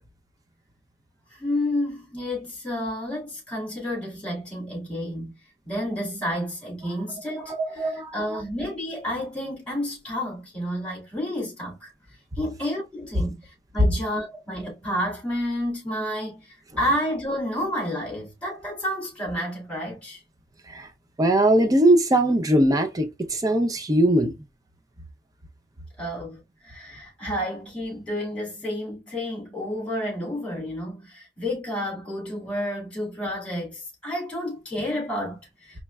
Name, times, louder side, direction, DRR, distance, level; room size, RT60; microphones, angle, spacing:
voice 1, 1.3-5.3 5.6-11.9 12.4-13.4 13.7-20.2 26.0-26.4 26.6-35.8, equal, 5° left, 2.3 m, -30 dB
voice 2, 21.2-24.3, right 1 dB, 20° right, 0.5 m, -20 dB
4.4 x 3.0 x 2.2 m
head